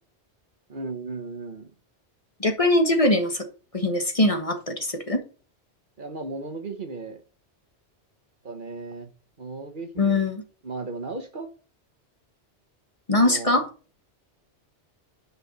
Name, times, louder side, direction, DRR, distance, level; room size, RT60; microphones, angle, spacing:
voice 1, 0.7-1.7 6.0-7.2 8.4-9.1 9.4-10.2 10.6-11.5 13.1-13.6, right 3 dB, 45° right, 1.2 m, -35 dB
voice 2, 2.4-3.4 3.7-5.2 10.0-10.4 13.1-13.7, left 1 dB, 30° left, 1.4 m, -22 dB
9.6 x 5.8 x 4.1 m
omnidirectional pair, 1.2 m